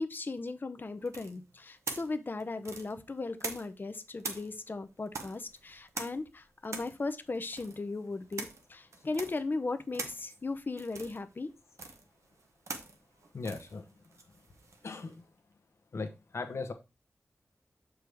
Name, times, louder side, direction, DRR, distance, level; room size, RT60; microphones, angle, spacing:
voice 1, 0.0-11.5, left 3 dB, 45° left, 0.6 m, -37 dB
sound 1, 1.1-3.9 4.2-15.2, right 3 dB, 85° right, 0.9 m, -44 dB
voice 2, 13.3-13.8 14.8-15.2 15.9-16.7, left 4 dB, 70° left, 0.9 m, -38 dB
6.4 x 4.7 x 3.4 m
wide cardioid pair, 80°, 5 cm